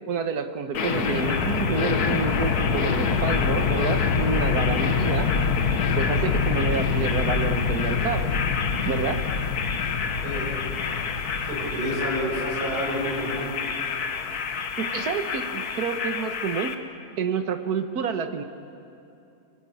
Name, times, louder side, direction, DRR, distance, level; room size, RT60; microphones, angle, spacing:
voice 1, 0.1-5.3 5.9-8.4 8.8-9.2 14.8-16.8 17.2-18.4, right 6 dB, 50° right, 8 dB, 1.6 m, -29 dB
sound 1, 0.7-16.7, left 5 dB, 50° left, 1.6 m, -25 dB
voice 2, 11.4-13.5, equal, 75° right, -5 dB, 8.0 m, -29 dB
29.5 x 17.5 x 8.6 m, 2.8 s
omnidirectional pair, 2.3 m